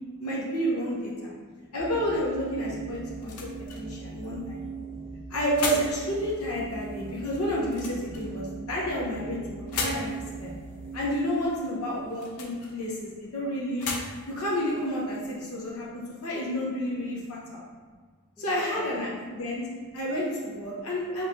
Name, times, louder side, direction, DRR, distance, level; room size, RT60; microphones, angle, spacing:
voice 1, 0.2-1.3 1.7-3.5 3.8-4.6 5.3-10.6 10.9-13.9 14.3-17.6 18.4-19.6 19.9-21.3, equal, 70° left, -4 dB, 0.9 m, -30 dB
voice 2, 1.2-1.7 11.9-12.0 12.4-12.8 13.0-13.1 15.4-16.3 17.0-18.0 18.4-19.1 19.5-19.6 19.8-19.9 20.7-20.8, left 1 dB, 5° left, -4 dB, 0.6 m, -53 dB
sound 1, 1.8-11.0, right 4 dB, 40° right, 1.1 m, -39 dB
sound 2, 2.6-15.9, left 3 dB, 90° left, 0.6 m, -40 dB
4.3 x 3.2 x 2.7 m, 1.5 s
head